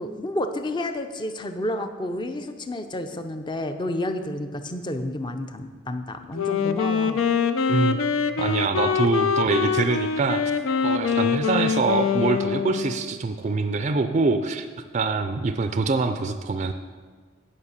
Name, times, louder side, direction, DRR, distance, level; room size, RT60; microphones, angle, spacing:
voice 1, 0.0-7.2, left 1 dB, 25° left, 7 dB, 0.6 m, -30 dB
Wind instrument woodwind instrument, 6.3-13.1, left 6 dB, 85° left, 0.5 m, -24 dB
voice 2, 8.4-10.4 10.8-14.7 14.9-16.7, right 3 dB, 35° right, 8 dB, 0.4 m, -24 dB
9.8 x 5.6 x 6.6 m, 1.5 s
head